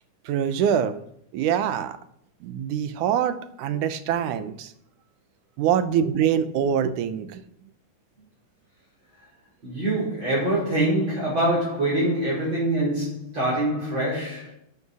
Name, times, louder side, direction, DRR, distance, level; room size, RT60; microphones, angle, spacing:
voice 1, 0.3-1.0 1.3-2.0 2.4-4.7 5.6-7.4, right 8 dB, 80° right, 2.3 m, -24 dB
voice 2, 9.6-14.5, right 1 dB, 35° right, 6.4 m, -24 dB
12.5 x 9.4 x 7.0 m
omnidirectional pair, 3.7 m